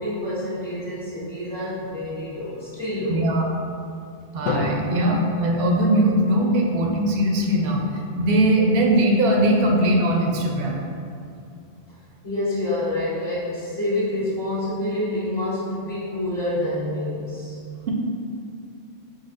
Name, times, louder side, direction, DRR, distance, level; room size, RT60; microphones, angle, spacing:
voice 1, 0.0-3.2 12.2-17.6, left 1 dB, 55° left, -12 dB, 1.5 m, -27 dB
voice 2, 3.1-3.4 4.3-10.8, right 1 dB, 60° right, 0 dB, 0.7 m, -20 dB
Drum, 4.5-6.6, left 3 dB, 75° left, 1.0 m, -30 dB
5.1 x 4.0 x 2.5 m, 2.5 s
omnidirectional pair, 1.3 m